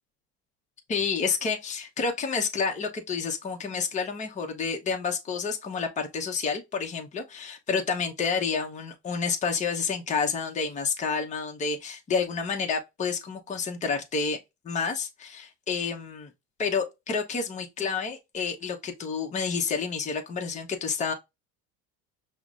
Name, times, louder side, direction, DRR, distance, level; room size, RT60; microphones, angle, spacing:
voice 1, 0.9-14.4 14.6-16.3 16.6-21.1, left 5 dB, 25° left, 0.8 m, -29 dB
5.7 x 2.1 x 2.4 m
cardioid pair, 120°, 31 cm